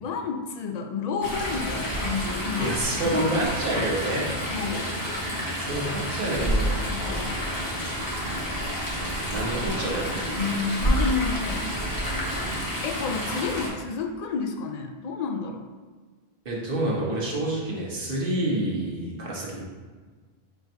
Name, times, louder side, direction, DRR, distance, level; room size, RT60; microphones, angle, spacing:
voice 1, 0.0-2.8 3.0-3.3 3.7-3.9 4.5-4.9 6.9-7.5 10.4-11.7 12.8-15.7, left 5 dB, 55° left, 5 dB, 0.5 m, -30 dB
Chatter / Stream, 1.2-13.7, equal, 20° left, 1.1 m, -29 dB
voice 2, 2.6-4.2 5.6-6.9 9.3-10.2 16.4-19.6, right 1 dB, 60° right, -4 dB, 1.2 m, -28 dB
4.6 x 2.6 x 4.4 m, 1.4 s
omnidirectional pair, 1.0 m